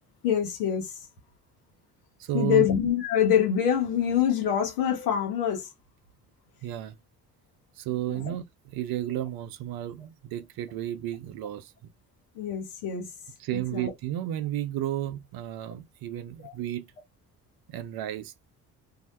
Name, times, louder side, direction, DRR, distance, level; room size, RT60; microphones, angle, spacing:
voice 1, 0.2-0.9 2.3-5.7 8.1-8.3 12.4-13.1 13.5-13.9 16.4-16.5, left 9 dB, 85° left, 0.8 m, -25 dB
voice 2, 2.2-2.7 6.6-6.9 7.8-11.9 13.4-16.9 17.7-18.3, right 12 dB, 55° right, 0.5 m, -32 dB
2.1 x 2.0 x 2.9 m
hypercardioid pair, 50°, 45 cm